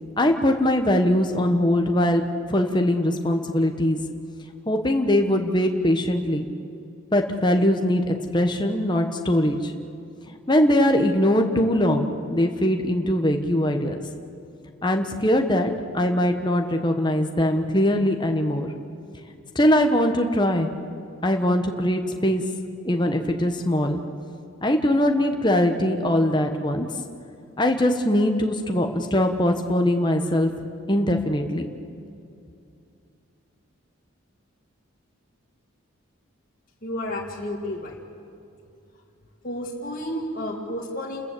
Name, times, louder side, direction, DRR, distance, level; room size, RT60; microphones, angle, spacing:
voice 1, 0.2-2.2 2.5-4.0 4.7-6.5 7.1-9.7 10.3-14.0 14.8-18.7 19.5-20.7 21.2-22.4 22.8-24.0 24.6-26.9 27.6-30.5 30.9-31.7, left 1 dB, 20° left, 4 dB, 1.3 m, -21 dB
voice 2, 36.8-38.0 39.4-41.3, left 1 dB, 40° left, -2 dB, 2.1 m, -31 dB
29.5 x 14.5 x 8.5 m, 2.6 s
head